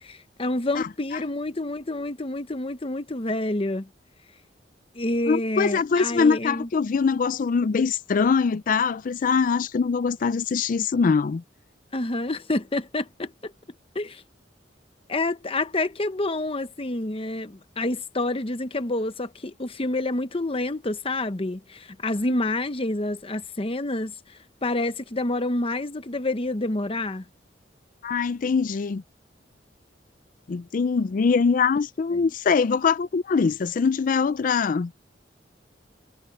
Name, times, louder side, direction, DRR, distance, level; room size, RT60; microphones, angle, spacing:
voice 1, 0.0-3.9 4.9-6.7 11.9-13.5 13.9-14.2 15.1-24.1 24.6-27.2, left 2 dB, 30° left, 1.0 m, -28 dB
voice 2, 0.7-1.2 5.3-11.4 28.0-29.0 30.5-34.9, left 5 dB, 45° left, 0.4 m, -23 dB
head